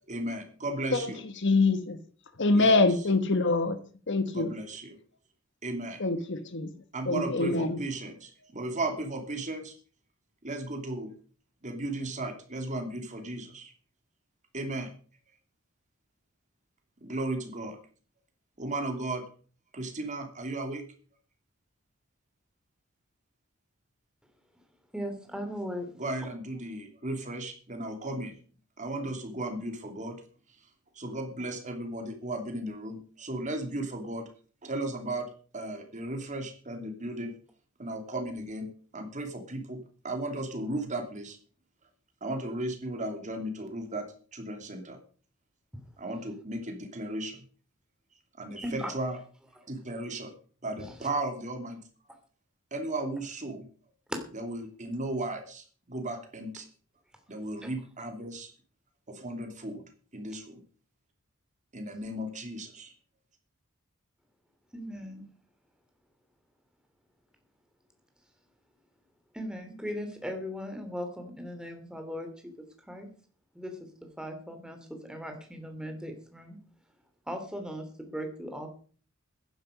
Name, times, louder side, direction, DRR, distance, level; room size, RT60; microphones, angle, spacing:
voice 1, 0.1-1.2 2.5-3.1 4.3-5.0 5.6-6.0 6.9-9.7 10.4-11.1 11.6-13.7 14.5-14.9 17.0-17.8 18.6-19.2 19.7-20.8 26.0-28.4 28.8-30.2 30.9-34.3 34.6-35.3 35.5-37.4 37.8-39.8 40.0-41.4 42.2-44.1 44.3-45.0 46.0-47.4 48.4-49.2 49.7-50.3 50.6-51.8 52.7-53.7 54.3-56.7 57.3-58.5 59.1-59.8 60.1-60.6 61.7-62.9, right 2 dB, 35° right, 2.9 m, -35 dB
voice 2, 1.4-2.0 2.4-3.8 4.1-4.5 6.0-6.7 7.1-7.8, left 3 dB, 60° left, 1.4 m, -24 dB
voice 3, 24.9-25.9 48.6-48.9 50.8-50.9 54.1-54.2 57.6-57.7 64.7-65.3 69.3-72.3 72.6-73.1 73.5-76.6 77.3-78.7, equal, 5° right, 2.9 m, -38 dB
14.5 x 11.0 x 5.2 m
head